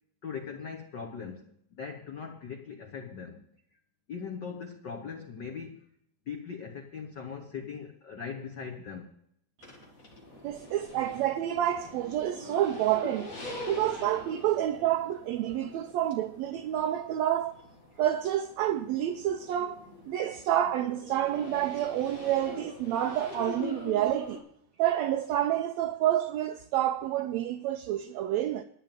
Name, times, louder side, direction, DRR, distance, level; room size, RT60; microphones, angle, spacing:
voice 1, 0.2-3.4 4.1-5.8 6.3-9.1, left 6 dB, 85° left, 0.9 m, -40 dB
sound 1, 9.6-24.4, left 2 dB, 30° left, 1.8 m, -44 dB
voice 2, 10.4-13.3 13.7-17.5 18.0-19.8 20.1-24.4 24.8-28.6, right 12 dB, 90° right, 1.5 m, -28 dB
10.5 x 6.9 x 9.0 m
omnidirectional pair, 3.7 m